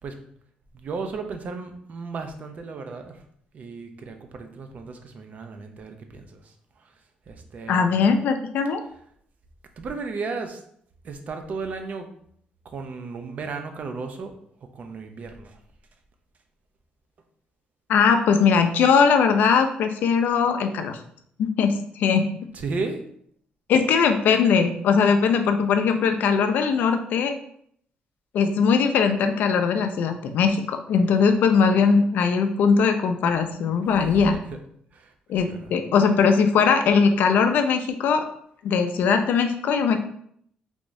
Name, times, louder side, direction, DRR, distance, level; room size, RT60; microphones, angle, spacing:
voice 1, 0.7-3.2 3.5-6.5 7.3-7.9 9.8-10.6 11.0-12.1 12.6-14.3 14.7-15.6 22.5-23.0 34.5-34.6 34.9-35.1 35.4-35.8, right 4 dB, 50° right, 6 dB, 0.5 m, -34 dB
voice 2, 7.7-8.8 17.9-21.0 21.4-22.3 23.7-27.3 28.3-34.4 35.3-38.2 38.6-40.0, left 6 dB, 75° left, 6 dB, 0.4 m, -20 dB
3.4 x 2.6 x 3.1 m, 0.66 s
cardioid pair, 95°, 3 cm